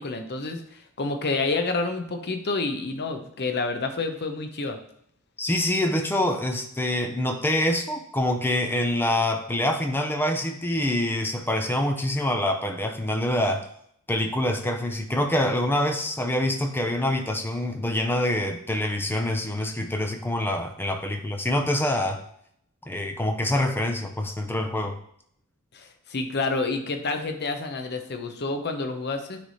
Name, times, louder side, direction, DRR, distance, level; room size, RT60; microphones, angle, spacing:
voice 1, 0.0-4.8 25.7-29.4, left 3 dB, 50° left, 6 dB, 0.8 m, -29 dB
voice 2, 5.4-13.6 14.1-22.2 22.9-25.0, left 1 dB, 10° left, 4 dB, 0.6 m, -25 dB
9.4 x 3.4 x 4.1 m, 0.68 s
head